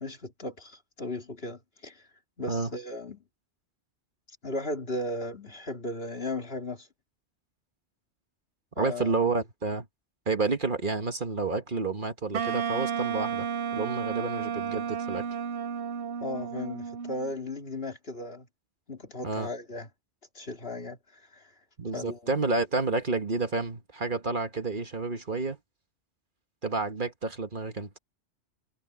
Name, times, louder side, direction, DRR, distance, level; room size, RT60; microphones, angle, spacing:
voice 1, 0.0-2.1 2.4-3.2 4.4-6.9 8.8-9.3 14.1-14.2 16.2-18.5 18.9-19.9 20.3-21.5 21.9-22.3, left 2 dB, 60° left, 3.1 m, -36 dB
voice 2, 8.8-9.8 10.3-13.5 13.7-15.3 19.2-19.5 21.8-25.6 26.6-27.9, right 3 dB, 45° right, 1.6 m, -30 dB
Wind instrument woodwind instrument, 12.3-17.3, right 7 dB, 70° right, 1.2 m, -32 dB
omnidirectional pair, 1.2 m